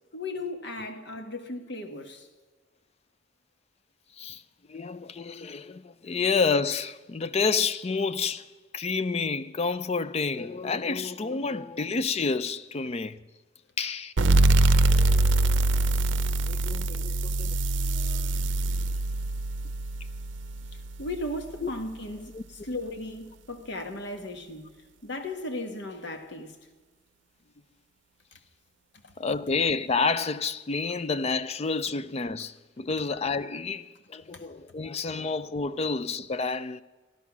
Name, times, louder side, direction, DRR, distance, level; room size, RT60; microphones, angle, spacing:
voice 1, 0.1-2.3 21.0-22.3 22.6-24.7 25.0-26.5 34.3-34.4, left 1 dB, 65° left, 1.4 m, -36 dB
voice 2, 4.7-8.5 8.7-13.2 13.8-14.1 16.5-17.6 18.0-18.3 21.6-21.7 22.3-22.4 29.2-36.8, left 4 dB, 35° left, 0.4 m, -29 dB
sound 1, 14.2-21.4, right 2 dB, 75° right, 0.6 m, -24 dB
14.0 x 12.0 x 6.0 m
head